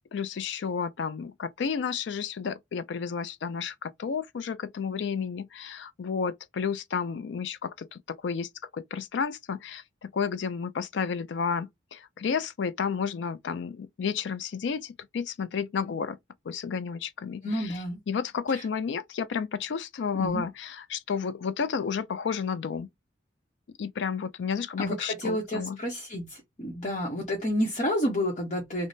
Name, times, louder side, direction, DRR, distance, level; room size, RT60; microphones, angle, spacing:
voice 1, 0.1-16.2 16.5-22.9 23.8-25.8, left 6 dB, 65° left, 0.4 m, -32 dB
voice 2, 17.4-18.0 18.5-18.6 20.1-20.4 24.8-28.9, equal, 35° left, 0.8 m, -30 dB
3.2 x 2.0 x 3.9 m
head